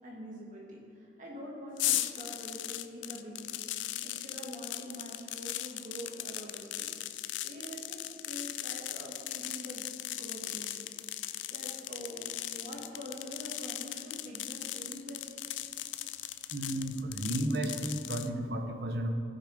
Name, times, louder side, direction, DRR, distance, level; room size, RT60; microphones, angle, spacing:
voice 1, 0.0-3.5 4.0-6.9 7.2-10.9 11.5-15.3, equal, 40° right, -3 dB, 2.4 m, -45 dB
sound 1, 1.8-18.3, left 14 dB, 70° left, 0.4 m, -38 dB
voice 2, 16.5-19.2, right 1 dB, 55° right, 5 dB, 0.9 m, -33 dB
14.5 x 7.0 x 5.0 m, 2.6 s
head